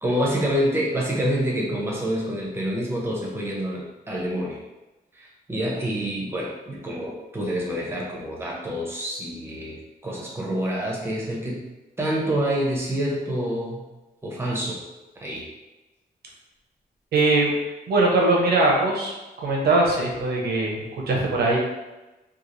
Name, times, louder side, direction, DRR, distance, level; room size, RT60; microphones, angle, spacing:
voice 1, 0.0-4.6 5.1-11.6 12.0-13.8 14.2-14.8 15.2-15.4, equal, 15° right, -3 dB, 0.7 m, -27 dB
voice 2, 17.1-17.5 17.9-19.1 19.4-21.6, right 2 dB, 90° right, -2 dB, 0.7 m, -21 dB
3.0 x 2.4 x 2.5 m, 1.1 s
wide cardioid pair, 140°, 16 cm